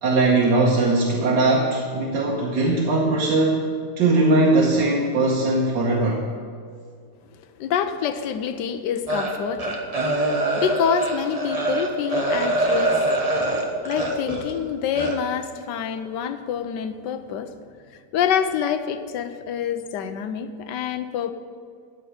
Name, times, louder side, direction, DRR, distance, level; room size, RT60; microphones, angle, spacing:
voice 1, 0.0-3.6 4.0-6.2, right 2 dB, 85° right, -3 dB, 1.8 m, -20 dB
voice 2, 7.3-9.8 10.6-13.0 13.8-17.5 18.1-21.3, left 8 dB, 80° left, 10 dB, 1.3 m, -26 dB
sound 1, 9.1-14.5 14.9-15.1, right 2 dB, 25° right, 1.2 m, -24 dB
13.0 x 4.5 x 8.6 m, 2.1 s
omnidirectional pair, 1.9 m